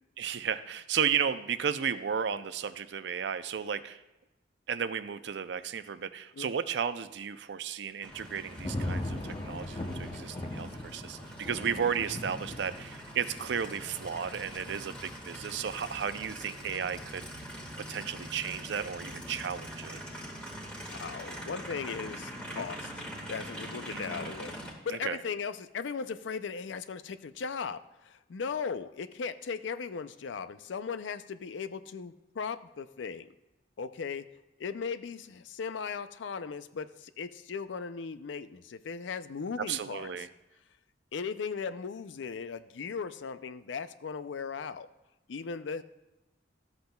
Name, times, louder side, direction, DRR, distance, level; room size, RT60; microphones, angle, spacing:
voice 1, 0.2-4.0 4.7-17.2 17.8-20.0 22.5-22.6 23.9-24.4 24.9-25.2 39.7-40.3, right 7 dB, 65° right, 13 dB, 0.4 m, -34 dB
Aircraft, 8.0-24.7, equal, 5° left, 1.6 m, -44 dB
Thunder / Rain, 8.1-19.1 19.5-19.9, left 1 dB, 25° left, 0.7 m, -41 dB
voice 2, 20.9-24.6 24.8-33.3 33.8-34.3 34.6-40.3 41.1-44.9 45.3-45.8, left 5 dB, 85° left, 13 dB, 0.4 m, -37 dB
13.5 x 7.8 x 2.3 m, 1.0 s
head